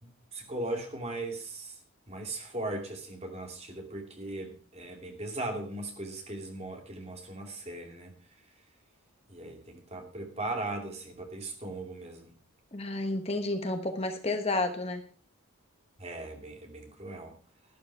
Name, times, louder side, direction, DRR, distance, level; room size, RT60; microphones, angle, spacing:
voice 1, 0.3-1.8 2.1-8.2 9.3-12.4 16.0-17.3, right 2 dB, 30° right, 3 dB, 2.5 m, -38 dB
voice 2, 12.7-15.0, left 2 dB, 30° left, 6 dB, 1.2 m, -31 dB
12.0 x 11.5 x 4.7 m, 0.39 s
head